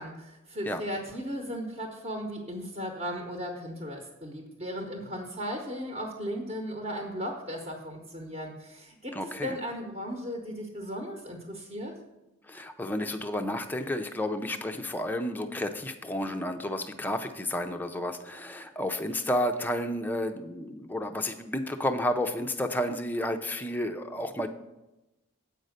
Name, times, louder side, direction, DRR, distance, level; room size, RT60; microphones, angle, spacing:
voice 1, 0.0-11.9, equal, 30° right, 1 dB, 0.9 m, -36 dB
voice 2, 9.1-9.6 12.5-24.5, left 1 dB, 10° left, 5 dB, 0.4 m, -31 dB
8.1 x 5.4 x 6.4 m, 1.0 s
head